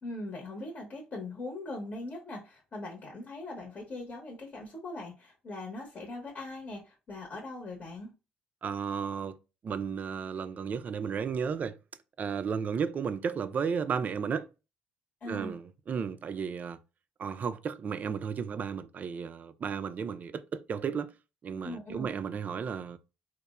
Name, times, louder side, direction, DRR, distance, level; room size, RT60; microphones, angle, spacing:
voice 1, 0.0-8.1 15.2-15.6 21.6-22.1, left 2 dB, 45° left, 0.8 m, -41 dB
voice 2, 8.6-9.4 9.6-11.8 12.2-14.5 15.3-16.8 17.2-21.1 21.4-23.0, right 6 dB, 45° right, 0.3 m, -33 dB
3.0 x 2.0 x 2.3 m
hypercardioid pair, 60°, 4 cm